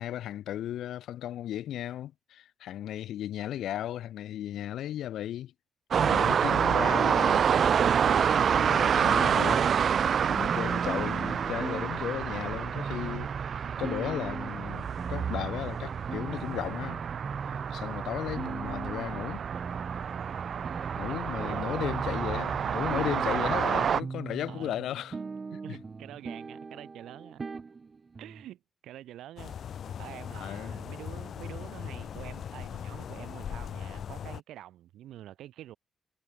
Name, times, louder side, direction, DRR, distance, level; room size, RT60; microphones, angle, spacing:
voice 1, 0.0-5.5 6.0-7.4 8.5-9.7 10.3-13.3 13.8-17.0 17.7-19.4 21.0-25.2 25.7-25.8 30.4-30.7, left 12 dB, 80° left, 0.4 m, -35 dB
sound 1, 5.9-24.0, right 7 dB, 50° right, 0.4 m, -28 dB
sound 2, 10.5-28.5, right 4 dB, 30° right, 1.4 m, -40 dB
voice 2, 21.1-21.9 23.7-24.1 24.5-24.9 25.5-27.4 28.2-29.6 30.0-35.8, right 13 dB, 85° right, 1.1 m, -47 dB
sound 3, 29.4-34.4, left 8 dB, 55° left, 0.7 m, -39 dB
cardioid pair, 120°, 0 cm